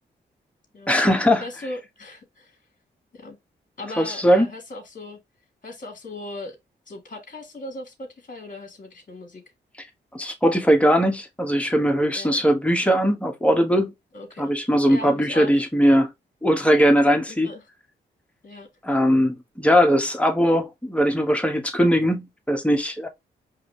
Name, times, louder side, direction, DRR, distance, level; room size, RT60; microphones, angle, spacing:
voice 1, 0.9-1.4 4.0-4.5 10.1-13.9 14.4-16.1 16.4-17.5 18.8-23.1, equal, 5° left, 1.6 m, -20 dB
voice 2, 1.4-2.6 3.1-3.4 3.8-5.2 5.6-6.6 6.9-9.4 12.1-12.4 14.1-14.5 14.9-15.5 17.3-17.7 18.4-18.7, left 2 dB, 40° left, 1.9 m, -38 dB
4.9 x 3.0 x 3.3 m
supercardioid pair, 40°, 21 cm